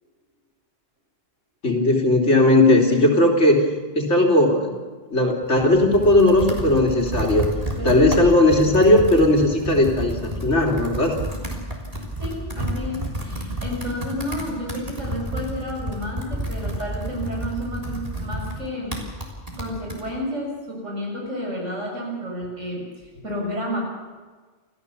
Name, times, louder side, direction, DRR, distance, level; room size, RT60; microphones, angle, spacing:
voice 1, 1.6-3.6 3.9-4.7 5.1-7.5 7.8-11.2, left 1 dB, 70° left, 0 dB, 3.5 m, -17 dB
Computer keyboard, 5.4-20.0, right 1 dB, 30° right, 3.8 m, -30 dB
voice 2, 7.7-8.4 12.2-18.9 19.6-23.8, equal, 80° right, -1 dB, 6.9 m, -31 dB
28.0 x 15.0 x 7.0 m, 1.4 s
omnidirectional pair, 1.3 m